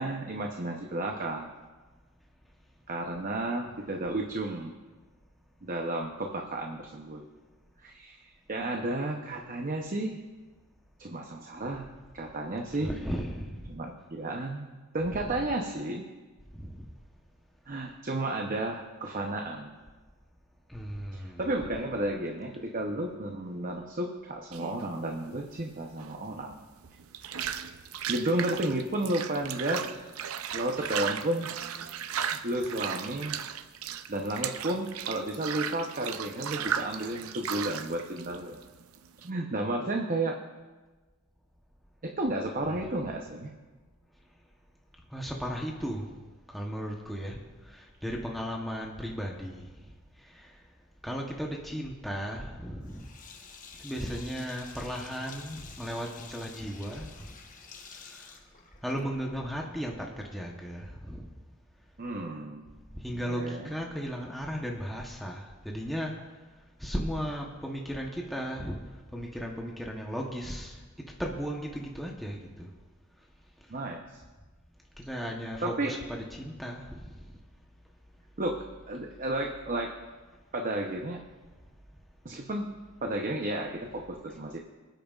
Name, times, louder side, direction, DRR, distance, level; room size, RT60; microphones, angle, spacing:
voice 1, 0.0-1.5 2.9-4.7 5.6-7.2 7.8-10.2 11.0-11.9 12.1-12.9 13.7-16.0 17.7-19.8 21.1-26.6 28.1-30.1 30.5-31.5 32.3-33.4 34.1-38.6 39.2-40.4 42.0-43.5 62.0-62.7 63.1-63.7 73.7-74.2 75.6-75.9 78.4-79.9 80.5-81.2 82.2-82.7 83.0-84.6, right 1 dB, 40° right, 2 dB, 0.8 m, -32 dB
voice 2, 12.8-13.6 15.0-15.3 16.5-16.8 20.7-21.6 45.1-46.1 46.5-50.6 51.0-53.1 53.8-57.3 57.9-58.3 58.8-61.3 62.9-66.4 66.8-68.8 69.1-70.8 71.2-72.7 75.0-77.3, equal, ahead, -2 dB, 0.9 m, -36 dB
sound 1, 24.5-39.3, right 8 dB, 80° right, 0.6 m, -36 dB
Sink (filling or washing), 52.8-59.2, left 5 dB, 40° left, 1.0 m, -49 dB
25.0 x 9.0 x 2.4 m, 1.3 s
head